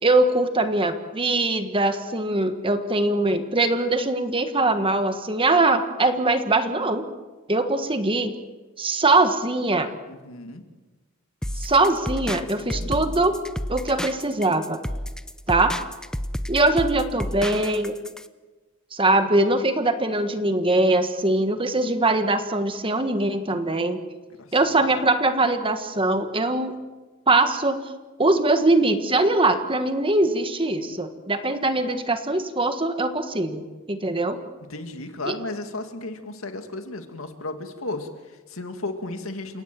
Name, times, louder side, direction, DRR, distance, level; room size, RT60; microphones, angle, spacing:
voice 1, 0.0-7.1 7.5-8.3 8.8-9.9 11.6-13.3 13.7-14.8 15.5-15.8 16.5-18.0 18.9-24.0 24.5-26.8 27.3-27.8 28.2-34.4 35.3-35.4, right 2 dB, 25° right, 8 dB, 1.5 m, -22 dB
voice 2, 10.1-10.6 12.3-13.2 24.4-24.5 34.7-39.6, left 2 dB, 70° left, 6 dB, 2.3 m, -34 dB
sound 1, 11.4-18.3, equal, 5° left, 0.6 m, -31 dB
29.5 x 17.0 x 7.7 m, 1.2 s
head